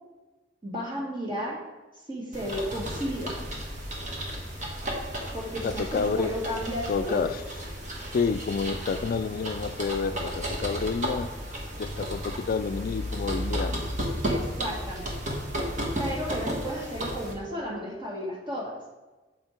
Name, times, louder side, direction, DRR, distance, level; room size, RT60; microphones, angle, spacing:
voice 1, 0.6-1.6 2.1-3.3 5.3-7.3 14.2-15.2 16.0-18.8, equal, 25° right, -4 dB, 2.0 m, -33 dB
sound 1, 2.3-17.3, equal, 45° right, 1.4 m, -33 dB
voice 2, 5.6-6.3 6.9-7.4 8.1-13.9, left 5 dB, 50° left, 13 dB, 0.3 m, -29 dB
7.3 x 5.6 x 4.4 m, 1.2 s
head